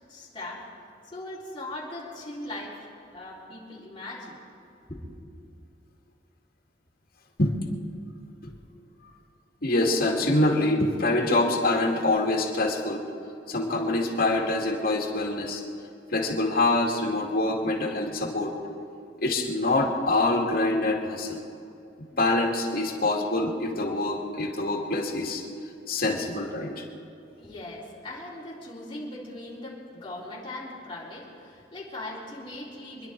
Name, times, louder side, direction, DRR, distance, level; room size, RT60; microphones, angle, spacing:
voice 1, 0.1-0.7 1.1-2.9 3.1-4.4 4.9-5.0 27.4-33.1, left 1 dB, 30° left, -6 dB, 4.1 m, -39 dB
voice 2, 9.6-13.0 13.5-15.6 16.1-18.5 19.2-21.4 22.2-25.4 25.9-26.8, left 2 dB, 55° left, -1 dB, 2.4 m, -25 dB
26.0 x 11.0 x 4.7 m, 2.5 s
head